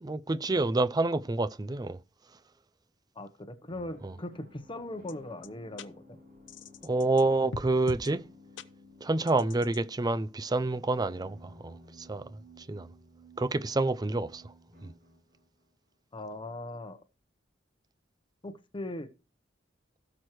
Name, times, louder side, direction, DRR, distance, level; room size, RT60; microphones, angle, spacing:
voice 1, 0.0-2.0 4.0-4.2 6.8-8.2 9.0-12.2 12.7-12.9 13.4-14.4 14.8-14.9, right 2 dB, 20° right, 0.5 m, -28 dB
voice 2, 3.2-5.9 16.1-17.0 18.4-19.1, left 1 dB, 25° left, 0.9 m, -39 dB
sound 1, 3.6-15.7, left 1 dB, 50° right, 7.4 m, -56 dB
sound 2, 5.1-5.2 5.4-5.5 5.8-5.9 6.5-7.2 7.5-8.1 8.6-8.7 9.3-9.8, left 3 dB, 75° left, 0.8 m, -40 dB
17.0 x 6.3 x 3.1 m
head